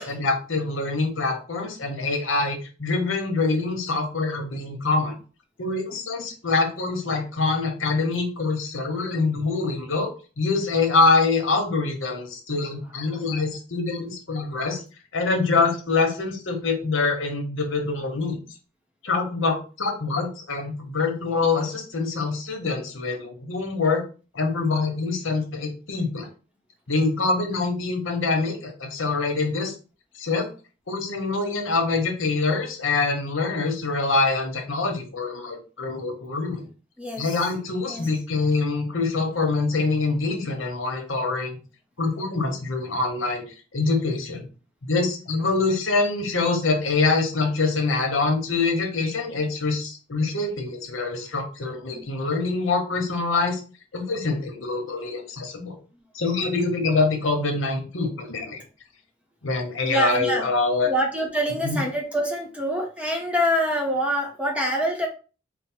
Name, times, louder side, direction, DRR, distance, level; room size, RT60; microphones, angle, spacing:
voice 1, 0.0-5.2 5.6-10.1 10.4-14.8 15.1-18.4 19.0-24.0 24.3-26.3 26.9-29.7 30.2-30.5 30.9-36.6 37.2-41.6 42.0-43.4 43.7-44.5 44.9-53.6 53.9-55.7 56.1-58.6 59.4-60.9 61.6-61.8, left 3 dB, 80° left, 3 dB, 1.1 m, -25 dB
voice 2, 59.8-60.4 60.9-65.1, equal, 5° right, 0 dB, 0.8 m, -25 dB
4.5 x 2.0 x 4.5 m, 0.35 s
head